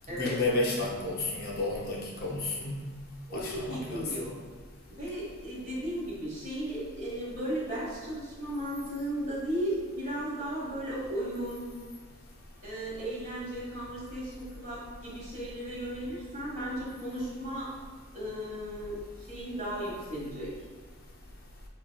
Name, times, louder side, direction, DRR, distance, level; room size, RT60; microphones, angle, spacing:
voice 1, 0.1-2.8 3.3-4.3, left 2 dB, 45° left, -3 dB, 0.6 m, -31 dB
voice 2, 3.3-4.3 4.9-11.6 12.6-17.7 18.1-20.5, right 1 dB, 35° right, -5 dB, 1.1 m, -35 dB
5.0 x 3.3 x 2.2 m, 1.5 s
head